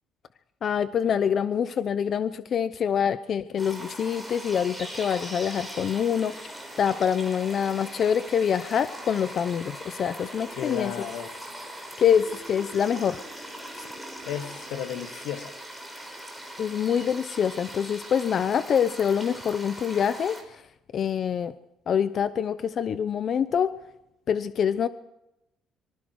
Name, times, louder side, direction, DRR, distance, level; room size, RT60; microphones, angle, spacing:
voice 1, 0.6-6.3 6.8-10.9 12.0-13.2 16.6-20.4 20.9-21.5 21.9-23.7 24.3-24.9, left 8 dB, 45° left, 0.8 m, -25 dB
sound 1, 3.6-20.4, right 1 dB, 5° left, 5.6 m, -40 dB
voice 2, 10.5-11.3 14.3-15.5, left 9 dB, 90° left, 2.4 m, -34 dB
25.0 x 24.0 x 4.8 m
cardioid pair, 140°, 0 cm